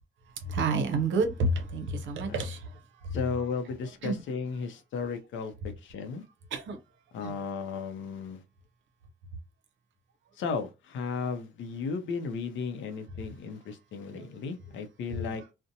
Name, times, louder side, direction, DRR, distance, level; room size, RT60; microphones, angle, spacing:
voice 1, 0.4-3.2 4.0-4.2 6.5-6.8 7.2-7.4 14.1-14.4 15.1-15.4, right 3 dB, 70° right, 0.6 m, -30 dB
voice 2, 3.1-5.5 5.8-6.2 7.1-8.4 10.4-15.5, left 5 dB, 70° left, 0.5 m, -35 dB
2.6 x 2.1 x 2.6 m
cardioid pair, 90°, 20 cm